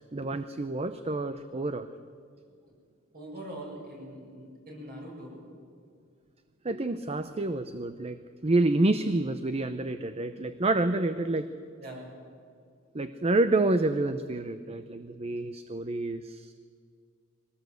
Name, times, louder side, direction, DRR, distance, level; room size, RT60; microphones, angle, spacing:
voice 1, 0.1-1.9 6.6-8.2 8.4-11.5 12.9-16.5, right 2 dB, 30° right, 10 dB, 0.7 m, -28 dB
voice 2, 3.1-5.4 11.8-12.1, right 1 dB, 50° right, -1 dB, 7.4 m, -42 dB
23.5 x 18.5 x 8.1 m, 2.2 s
head